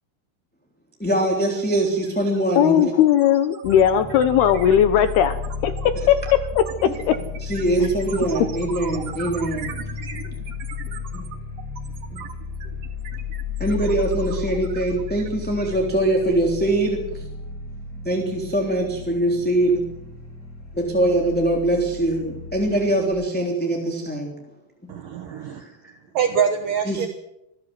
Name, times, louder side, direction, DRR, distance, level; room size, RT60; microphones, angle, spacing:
voice 1, 1.0-2.9 6.8-6.9 7.4-9.7 11.1-11.2 12.1-12.2 13.6-17.2 18.0-19.8 20.7-24.4 25.5-25.9 26.9-27.1, right 1 dB, 5° left, 0 dB, 2.3 m, -23 dB
sound 1, 1.6-1.7 2.0-16.4, right 7 dB, 50° right, 2.0 m, -40 dB
voice 2, 2.6-5.4 5.6-7.1 7.8-7.9, left 9 dB, 75° left, 11 dB, 2.6 m, -18 dB
sound 2, 3.6-23.1, left 5 dB, 90° left, 9.8 m, -34 dB
voice 3, 24.9-25.7 26.1-27.1, right 7 dB, 65° right, 6 dB, 2.3 m, -24 dB
26.5 x 15.5 x 7.8 m, 0.88 s
omnidirectional pair, 5.4 m